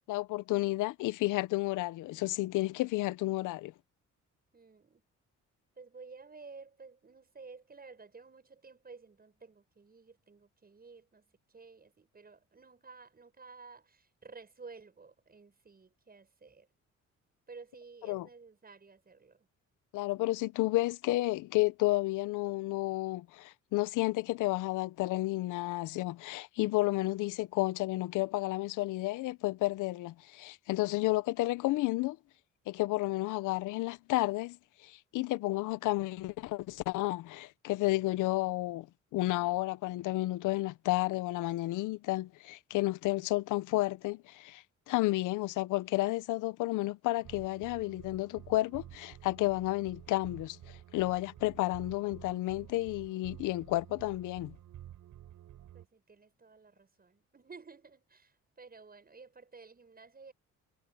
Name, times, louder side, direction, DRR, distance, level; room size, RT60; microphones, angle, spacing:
voice 1, 0.1-3.7 18.1-18.3 19.9-32.2 32.7-34.6 34.8-38.9 39.1-54.6, left 18 dB, 90° left, 0.7 m, -31 dB
voice 2, 4.5-5.0 5.8-16.7 17.5-19.5 30.8-31.2 55.7-60.3, right 4 dB, 30° right, 7.4 m, -53 dB
sound 1, 47.2-55.9, right 12 dB, 80° right, 5.8 m, -51 dB
cardioid pair, 90°, 30 cm